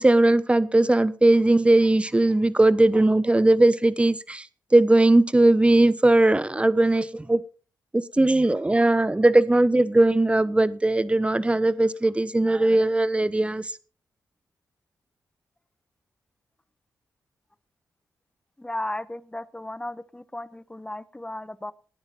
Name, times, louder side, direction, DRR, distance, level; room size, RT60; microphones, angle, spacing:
voice 1, 0.0-7.4 7.9-13.8, right 2 dB, 15° right, 1.1 m, -19 dB
voice 2, 18.6-21.7, left 1 dB, 15° left, 1.0 m, -35 dB
17.0 x 9.6 x 4.1 m
supercardioid pair, 50°, 7 cm